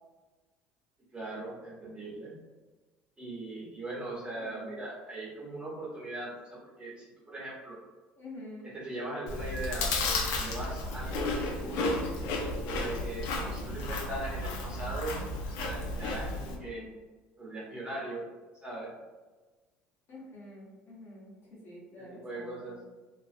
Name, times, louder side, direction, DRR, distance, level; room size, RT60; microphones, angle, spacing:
voice 1, 1.1-2.3 3.2-7.8 8.7-12.0 12.4-16.8 17.4-18.3 18.6-18.9 22.0-22.7, right 2 dB, 20° right, -5 dB, 1.1 m, -39 dB
voice 2, 4.4-4.8 8.2-8.7 13.5-13.9 16.5-17.0 20.1-22.8, left 1 dB, 45° left, -5 dB, 0.9 m, -48 dB
Chewing mastication, 9.3-16.6, left 3 dB, 70° left, 0.4 m, -33 dB
2.4 x 2.2 x 2.5 m, 1.3 s
hypercardioid pair, 75°, 5 cm